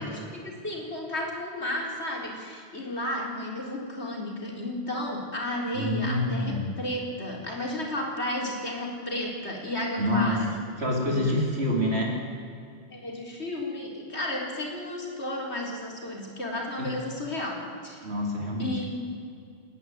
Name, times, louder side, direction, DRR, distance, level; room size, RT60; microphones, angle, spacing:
voice 1, 0.1-10.5 11.0-11.4 12.9-18.0 18.6-19.0, left 1 dB, 75° left, -1 dB, 4.5 m, -33 dB
voice 2, 5.7-6.7 10.0-10.4 10.8-12.2 16.8-16.9 18.0-18.8, left 1 dB, 70° right, -1 dB, 4.5 m, -27 dB
29.5 x 11.0 x 9.4 m, 2.4 s
omnidirectional pair, 1.1 m